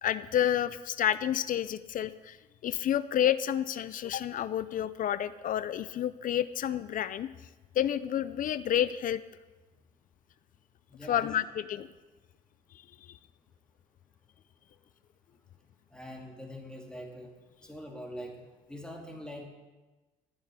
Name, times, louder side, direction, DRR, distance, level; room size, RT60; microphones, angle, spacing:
voice 1, 0.0-2.4 2.6-7.3 7.8-9.2 11.1-11.9, left 10 dB, 55° left, 14 dB, 0.6 m, -29 dB
voice 2, 10.9-11.3 15.9-17.3 17.6-19.5, equal, 5° left, 0 dB, 2.3 m, -43 dB
15.0 x 6.5 x 9.7 m, 1.2 s
cardioid pair, 110°, 17 cm